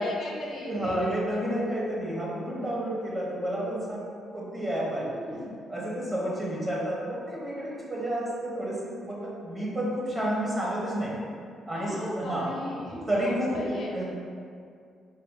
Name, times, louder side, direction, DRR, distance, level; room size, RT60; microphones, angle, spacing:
voice 1, 0.0-1.1 1.6-1.7 4.9-5.5 11.7-14.0, left 2 dB, 55° left, -2 dB, 0.8 m, -37 dB
voice 2, 0.6-4.0 4.3-5.4 5.7-11.2 11.7-12.5 13.1-13.6 13.9-14.0, right 1 dB, 25° right, -5 dB, 1.0 m, -30 dB
4.5 x 2.3 x 3.7 m, 2.3 s
cardioid pair, 90°, 0 cm